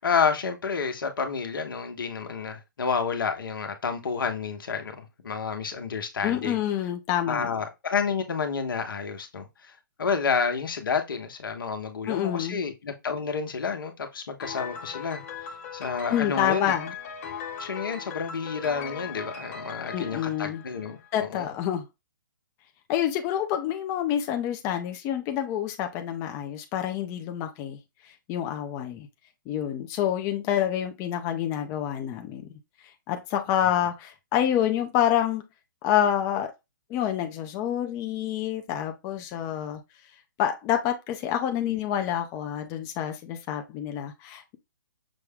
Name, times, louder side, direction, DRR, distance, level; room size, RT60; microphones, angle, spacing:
voice 1, 0.0-6.6 7.3-15.2 15.7-16.7 17.6-21.5, left 5 dB, 80° left, 1.1 m, -30 dB
voice 2, 6.2-7.5 12.1-12.6 16.1-16.9 19.9-20.6 21.1-21.9 22.9-27.8 28.3-29.1 29.5-32.5 33.1-35.4 35.8-36.5 36.9-39.8 40.4-44.6, left 10 dB, 25° left, 0.5 m, -27 dB
Piano, 14.4-21.2, left 6 dB, 45° left, 1.4 m, -39 dB
6.1 x 2.3 x 3.5 m
hypercardioid pair, 140°, 11 cm